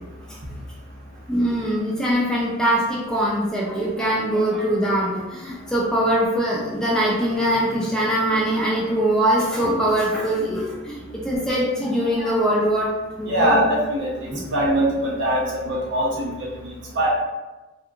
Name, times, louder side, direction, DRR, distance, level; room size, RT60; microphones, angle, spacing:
voice 1, 1.3-12.9 13.2-13.6 14.3-14.5, right 1 dB, 5° left, -5 dB, 0.3 m, -22 dB
voice 2, 13.2-16.5 16.9-17.1, right 1 dB, 55° right, -4 dB, 0.8 m, -22 dB
2.9 x 2.3 x 2.3 m, 1.1 s
head